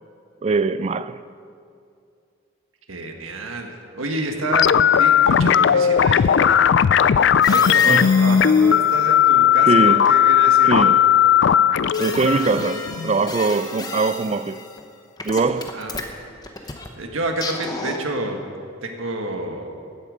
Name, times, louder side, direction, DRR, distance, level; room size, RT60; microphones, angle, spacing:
voice 1, 0.4-1.2 7.9-8.1 9.6-10.0 10.6-11.0 12.0-14.6 15.2-15.7, right 4 dB, 30° right, 0.3 m, -22 dB
voice 2, 2.9-6.5 7.5-10.9 15.7-16.0 16.6-18.4 18.8-19.8, right 2 dB, 90° right, 1.6 m, -29 dB
sound 1, 4.5-13.4, left 9 dB, 60° left, 0.3 m, -16 dB
sound 2, 7.4-9.1 11.9-14.9 15.2-16.9 17.4-18.2, left 3 dB, 20° left, 0.9 m, -33 dB
15.5 x 8.5 x 6.4 m
head